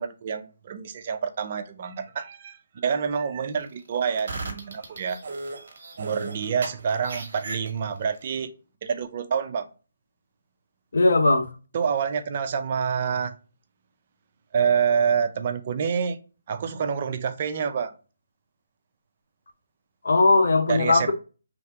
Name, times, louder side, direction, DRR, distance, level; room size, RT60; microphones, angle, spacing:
voice 1, 0.0-5.2 6.0-8.5 8.8-9.7 11.7-13.3 14.5-16.2 16.5-17.9 20.7-21.1, right 7 dB, 40° right, 0.4 m, -27 dB
sound 1, 4.0-8.1, right 2 dB, 55° right, 1.1 m, -36 dB
voice 2, 10.9-11.5 20.0-21.1, left 3 dB, 70° left, 0.8 m, -19 dB
3.2 x 2.5 x 4.5 m
hypercardioid pair, 160°, 0 cm